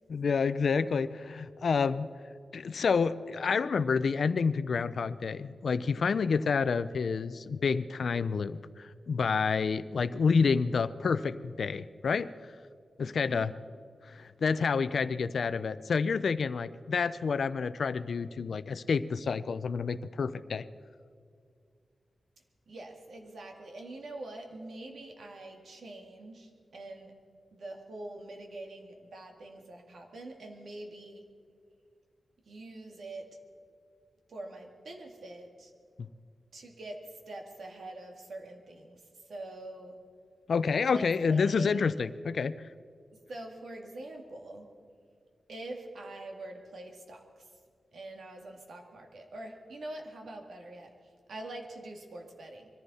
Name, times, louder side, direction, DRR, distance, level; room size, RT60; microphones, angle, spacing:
voice 1, 0.1-2.1 2.5-12.5 13.0-13.5 14.0-20.7 36.0-36.1 40.5-42.5, left 5 dB, 70° left, 15 dB, 0.5 m, -29 dB
voice 2, 13.0-13.5 22.7-27.2 27.5-31.2 32.5-33.4 34.3-35.7 36.5-40.0 40.9-41.9 43.3-44.7 45.5-47.5 47.9-52.7, right 2 dB, 80° right, 2 dB, 2.1 m, -45 dB
22.5 x 14.5 x 4.2 m, 2.2 s
wide cardioid pair, 140°, 0 cm